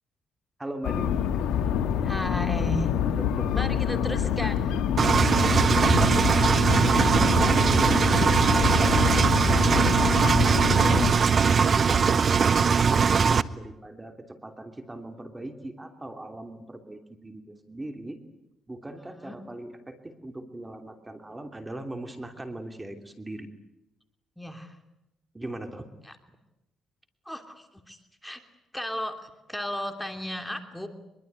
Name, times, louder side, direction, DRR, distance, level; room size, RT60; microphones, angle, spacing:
voice 1, 0.6-1.2 3.0-3.8 5.1-6.2 7.0-9.7 10.5-18.2 18.7-23.5 25.3-25.8 26.3-26.4, right 1 dB, 15° right, 6 dB, 3.0 m, -39 dB
sound 1, 0.8-11.1, left 8 dB, 85° left, 2.3 m, -26 dB
voice 2, 2.0-2.9 3.5-4.8 6.5-7.3 19.2-19.4 24.4-24.8 26.0-26.2 27.2-28.4 28.7-29.2 29.5-30.9, equal, 5° left, 6 dB, 3.0 m, -35 dB
Engine, 5.0-13.4, right 6 dB, 45° right, 0.9 m, -21 dB
24.5 x 23.0 x 9.4 m, 0.91 s
cardioid pair, 90°, 0 cm